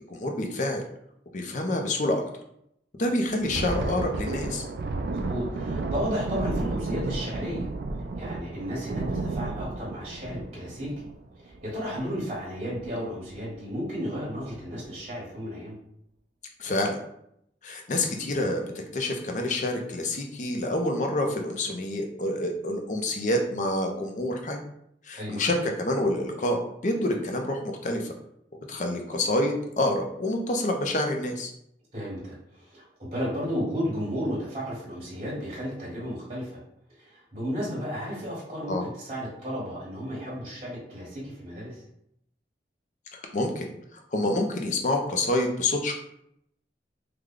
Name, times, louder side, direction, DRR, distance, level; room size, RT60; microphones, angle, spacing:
voice 1, 0.1-0.8 1.3-2.2 3.0-4.7 16.6-17.0 17.6-18.6 18.9-24.6 25.0-28.1 28.7-31.5 38.7-38.8 43.1-45.9, left 1 dB, 45° left, 3 dB, 0.5 m, -27 dB
Thunder, 3.3-12.4 12.7-12.9 13.3-13.5 14.2-14.6, right 3 dB, 65° right, 0.3 m, -32 dB
voice 2, 5.1-7.7 8.2-10.9 11.3-15.8 25.2-25.4 31.9-36.6 37.0-41.8, equal, 30° right, -7 dB, 1.2 m, -33 dB
3.2 x 2.2 x 3.7 m, 0.75 s
head